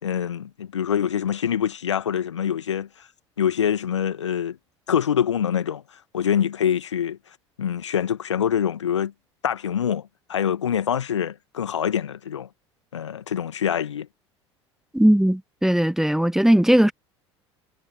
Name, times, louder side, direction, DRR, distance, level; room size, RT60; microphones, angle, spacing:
voice 1, 0.0-3.1 3.4-4.6 4.9-5.8 6.1-7.2 7.6-9.1 9.4-12.5 12.9-14.1, left 9 dB, 75° left, 1.9 m, -25 dB
voice 2, 14.9-16.9, right 1 dB, 5° right, 1.4 m, -18 dB
figure-of-eight pair, 70°, 15 cm